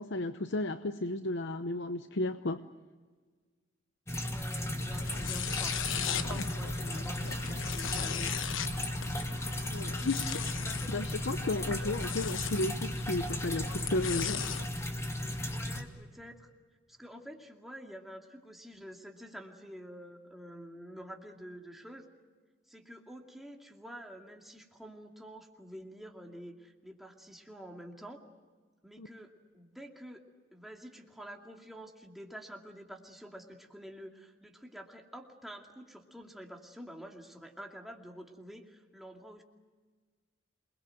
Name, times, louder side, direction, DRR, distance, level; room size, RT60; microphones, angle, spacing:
voice 1, 0.0-2.6 9.7-10.2 10.9-14.4 29.0-29.1, left 2 dB, 65° left, 9 dB, 0.9 m, -33 dB
sound 1, 4.1-15.8, left 1 dB, 15° left, 2.1 m, -35 dB
voice 2, 4.2-8.3 8.8-9.4 9.9-10.1 10.6-11.0 11.7-12.1 15.4-16.5 16.9-22.1 22.7-28.2 28.8-30.2 30.5-39.4, equal, ahead, 1 dB, 2.5 m, -48 dB
sound 2, 4.9-14.7, left 7 dB, 85° left, 1.1 m, -38 dB
27.5 x 21.0 x 7.8 m, 1.4 s
head